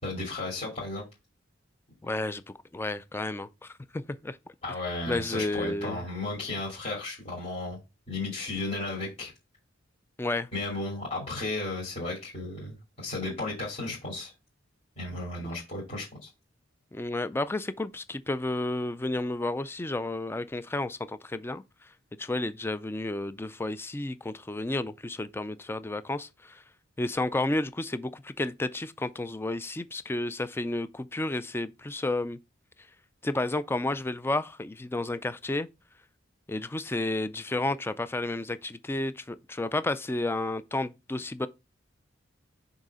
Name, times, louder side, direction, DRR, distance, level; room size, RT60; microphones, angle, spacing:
voice 1, 0.0-1.0 4.6-7.8 8.1-9.3 10.5-14.3 15.0-16.3, left 2 dB, 35° left, 3.1 m, -34 dB
voice 2, 2.0-4.4 5.1-6.1 10.2-10.5 16.9-21.9 22.2-26.6 27.0-32.4 33.2-35.7 36.5-41.5, left 2 dB, 10° left, 0.4 m, -31 dB
6.5 x 4.0 x 3.6 m
head